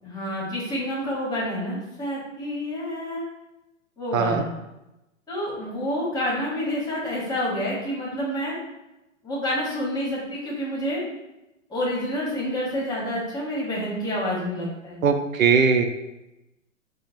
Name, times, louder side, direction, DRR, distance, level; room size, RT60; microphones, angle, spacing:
voice 1, 0.0-3.2 4.0-4.5 5.3-8.6 9.2-11.0 11.7-15.0, equal, 10° left, -5 dB, 1.0 m, -28 dB
voice 2, 4.1-4.5 15.0-15.9, right 5 dB, 90° right, 8 dB, 0.5 m, -20 dB
6.2 x 2.1 x 2.6 m, 0.95 s
hypercardioid pair, 130°, 39 cm